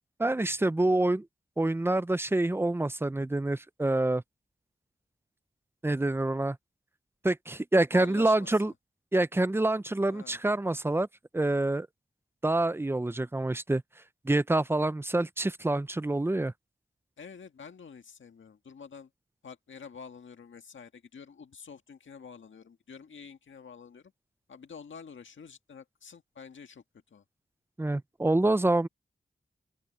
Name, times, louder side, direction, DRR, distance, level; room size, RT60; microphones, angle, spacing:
voice 1, 0.2-1.3 1.6-4.2 5.8-6.6 7.2-8.7 9.1-11.1 11.3-11.9 12.4-13.8 14.2-16.5 27.8-28.9, right 2 dB, 10° right, 0.5 m, -26 dB
voice 2, 7.9-8.7 10.1-10.4 17.2-19.1 19.4-24.1 24.5-26.8 27.1-27.2, left 6 dB, 85° left, 1.7 m, -48 dB
open air
wide cardioid pair, 110°, 19 cm